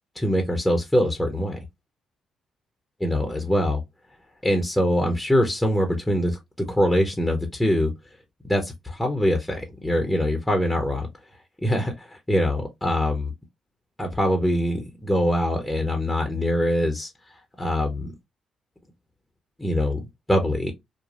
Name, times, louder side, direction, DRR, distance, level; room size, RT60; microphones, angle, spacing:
voice 1, 0.1-1.6 3.0-3.8 4.4-7.9 8.5-11.1 11.6-13.3 14.0-18.1 19.6-20.7, equal, 10° left, 0.9 m, -23 dB
3.0 x 2.3 x 2.5 m
supercardioid pair, 55°, 0 cm